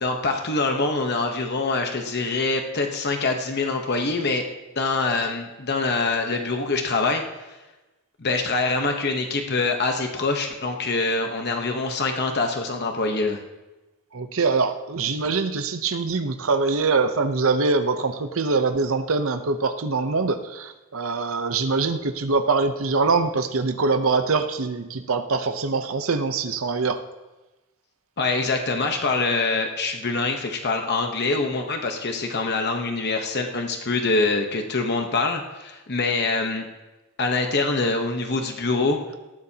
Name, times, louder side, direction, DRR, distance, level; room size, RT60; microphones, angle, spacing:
voice 1, 0.0-4.4 4.8-7.6 8.2-13.4 28.2-36.6 37.2-39.0, left 3 dB, 50° left, 3 dB, 1.0 m, -24 dB
voice 2, 14.1-27.0, right 4 dB, 65° right, 8 dB, 0.8 m, -23 dB
18.5 x 14.5 x 2.9 m, 1.1 s
head